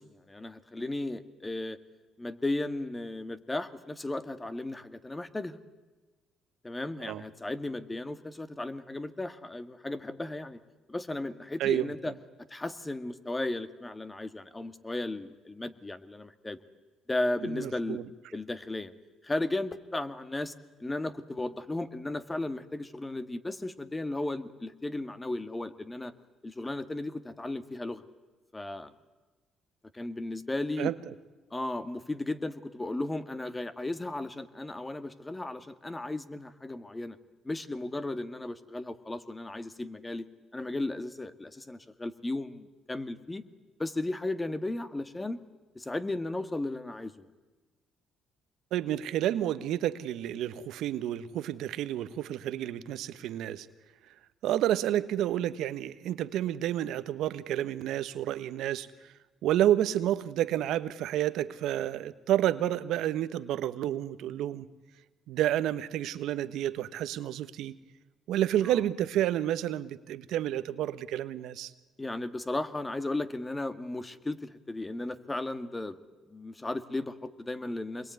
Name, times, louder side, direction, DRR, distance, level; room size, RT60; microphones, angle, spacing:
voice 1, 0.0-1.8 2.2-5.6 6.6-10.6 10.9-12.1 12.5-16.6 17.1-18.0 18.3-18.9 19.2-20.5 20.8-26.1 26.4-28.0 28.5-28.9 29.9-30.9 31.5-37.2 37.4-40.3 40.5-43.4 43.8-45.4 45.8-47.3 68.7-68.8 72.0-76.0 76.3-78.1, left 2 dB, 20° left, 1.9 m, -35 dB
voice 2, 11.6-12.1 17.4-18.1 30.8-30.9 48.7-53.7 54.4-59.1 59.4-64.7 65.3-67.8 68.3-71.7, right 12 dB, 80° right, 1.3 m, -30 dB
27.0 x 22.0 x 9.5 m
supercardioid pair, 70°, 0 cm